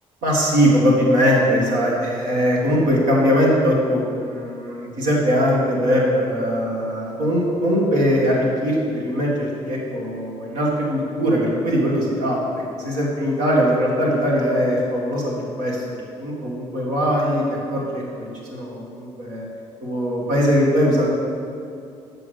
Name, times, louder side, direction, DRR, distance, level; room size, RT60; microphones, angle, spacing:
voice 1, 0.2-17.4 17.7-19.4 19.8-21.1, equal, 85° right, -4 dB, 1.9 m, -21 dB
7.2 x 5.0 x 6.5 m, 2.5 s
supercardioid pair, 70°, 13 cm